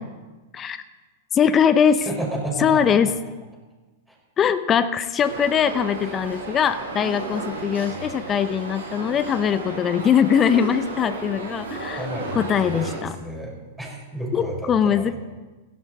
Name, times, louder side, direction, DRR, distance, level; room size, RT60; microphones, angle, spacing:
voice 1, 1.3-2.0 2.6-3.1 4.4-12.0 12.3-13.1 14.3-15.1, left 8 dB, 25° left, 12 dB, 0.8 m, -21 dB
voice 2, 2.0-3.1 4.1-4.2 6.0-6.1 12.0-15.1, right 1 dB, 5° right, -3 dB, 5.4 m, -32 dB
sound 1, 5.2-13.0, right 3 dB, 80° right, 6.3 m, -34 dB
16.5 x 13.5 x 4.3 m, 1.2 s
hypercardioid pair, 105°, 0 cm